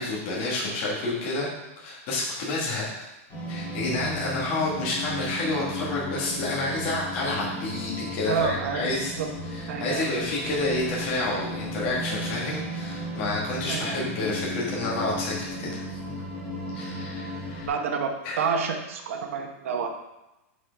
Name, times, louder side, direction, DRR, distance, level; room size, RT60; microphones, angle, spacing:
voice 1, 0.0-1.5 1.8-3.1 3.5-9.1 9.5-16.1 16.7-17.7 18.2-18.4, left 2 dB, 35° left, -5 dB, 1.6 m, -29 dB
sound 1, 3.3-17.7, equal, 20° left, 2.3 m, -35 dB
voice 2, 8.3-8.9 9.2-9.3 9.7-10.1 13.7-14.0 17.6-18.1 18.4-19.9, right 6 dB, 65° right, 4 dB, 1.1 m, -28 dB
9.0 x 4.4 x 3.4 m, 0.95 s
supercardioid pair, 175°, 8 cm